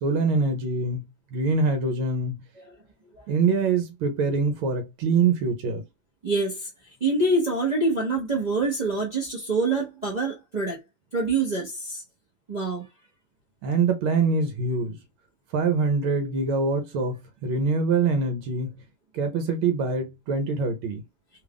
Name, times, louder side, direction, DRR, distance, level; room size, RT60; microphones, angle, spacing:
voice 1, 0.0-2.4 3.3-5.8 13.6-15.0 15.5-18.8 19.1-21.0, right 4 dB, 80° right, 1.5 m, -24 dB
voice 2, 6.2-6.7 7.0-10.8 11.1-12.0 12.5-12.9, right 3 dB, 50° right, 0.4 m, -25 dB
3.5 x 2.4 x 3.4 m
omnidirectional pair, 2.3 m